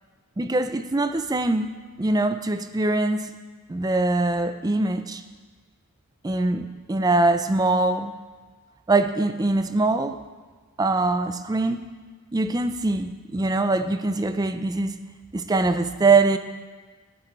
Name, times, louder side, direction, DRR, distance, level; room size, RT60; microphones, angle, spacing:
voice 1, 0.4-1.7 2.0-3.3 3.7-5.2 6.2-8.1 8.9-10.2 10.8-11.8 12.3-14.9 15.3-16.4, right 2 dB, 15° right, 9 dB, 0.4 m, -23 dB
14.0 x 8.7 x 4.0 m, 1.4 s
head